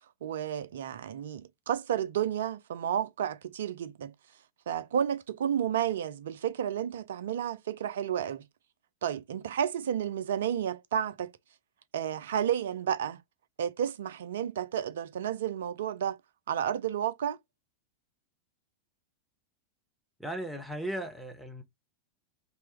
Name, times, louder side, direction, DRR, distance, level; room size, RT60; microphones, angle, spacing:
voice 1, 0.2-4.1 4.7-8.5 9.0-11.3 11.9-13.2 13.6-16.2 16.5-17.4, right 9 dB, 60° right, 0.3 m, -31 dB
voice 2, 20.2-21.6, right 1 dB, ahead, 0.8 m, -36 dB
3.0 x 2.3 x 2.9 m
figure-of-eight pair, 90°, 0 cm